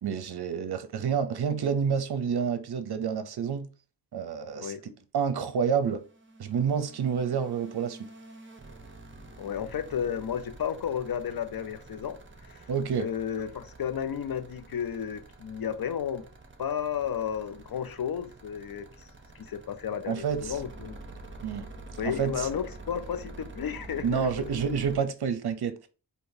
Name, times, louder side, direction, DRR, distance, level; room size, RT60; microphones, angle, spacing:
voice 1, 0.0-3.7 4.1-6.0 6.4-8.0 12.7-13.1 20.1-20.5 21.4-21.7 22.0-22.5 24.0-25.9, right 6 dB, 65° right, 0.6 m, -29 dB
sound 1, 5.7-25.0, right 2 dB, 25° right, 0.7 m, -47 dB
voice 2, 9.4-12.2 12.4-12.7 13.0-16.2 16.6-18.9 19.3-21.0 22.0-24.3, left 8 dB, 55° left, 0.5 m, -33 dB
3.7 x 2.7 x 2.6 m
cardioid pair, 45°, 43 cm